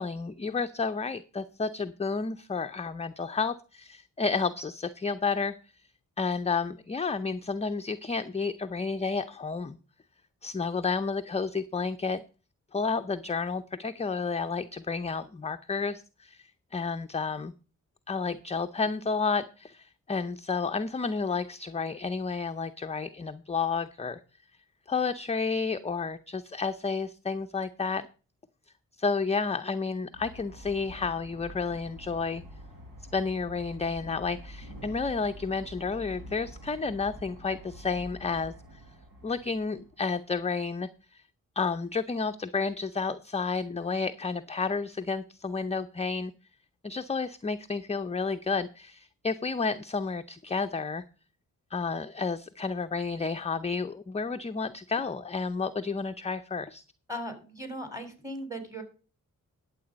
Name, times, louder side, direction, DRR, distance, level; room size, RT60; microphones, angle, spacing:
voice 1, 0.0-5.5 6.2-9.8 10.4-12.2 12.7-17.5 18.1-24.2 24.9-28.1 29.0-32.4 33.1-38.8 39.2-41.2 41.6-46.3 46.8-51.0 51.7-56.8, left 4 dB, 20° left, 9 dB, 0.6 m, -31 dB
sound 1, 30.1-40.3, equal, 80° right, 4.3 m, -47 dB
voice 2, 57.1-58.8, equal, 10° right, 7 dB, 3.8 m, -38 dB
11.5 x 7.5 x 5.1 m, 0.36 s
cardioid pair, 65°, 33 cm